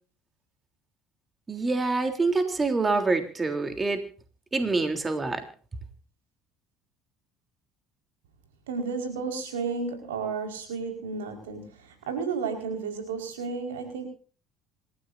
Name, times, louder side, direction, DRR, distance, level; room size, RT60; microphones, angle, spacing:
voice 1, 1.5-4.0 4.5-5.4, right 3 dB, 25° right, 7 dB, 3.5 m, -26 dB
voice 2, 8.7-14.0, right 5 dB, 90° right, 4 dB, 5.0 m, -32 dB
27.0 x 15.0 x 2.7 m, 0.40 s
hypercardioid pair, 70°, 0 cm